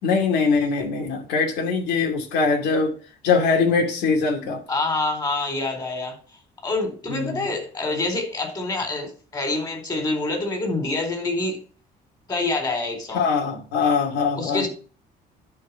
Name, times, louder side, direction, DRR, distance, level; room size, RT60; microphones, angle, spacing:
voice 1, 0.0-2.9 3.2-4.6 7.1-7.5 13.1-14.7, left 5 dB, 85° left, 3 dB, 2.7 m, -22 dB
voice 2, 4.7-6.1 6.6-11.6 12.3-13.2 14.4-14.7, left 2 dB, 25° left, 4 dB, 4.1 m, -26 dB
11.0 x 4.8 x 5.8 m, 0.38 s
cardioid pair, 110°, 17 cm